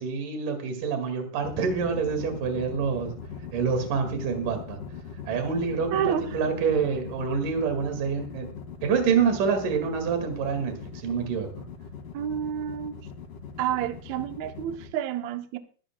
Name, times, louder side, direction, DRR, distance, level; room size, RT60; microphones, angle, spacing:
voice 1, 0.0-3.1 3.5-4.8 5.3-8.5 8.8-11.6, right 6 dB, 60° right, 6 dB, 3.5 m, -27 dB
sound 1, 1.4-14.9, left 7 dB, 60° left, 3.6 m, -40 dB
voice 2, 5.9-6.3 12.1-13.0 13.6-15.6, right 9 dB, 75° right, 7 dB, 1.6 m, -29 dB
22.5 x 11.5 x 2.3 m, 0.38 s
omnidirectional pair, 4.4 m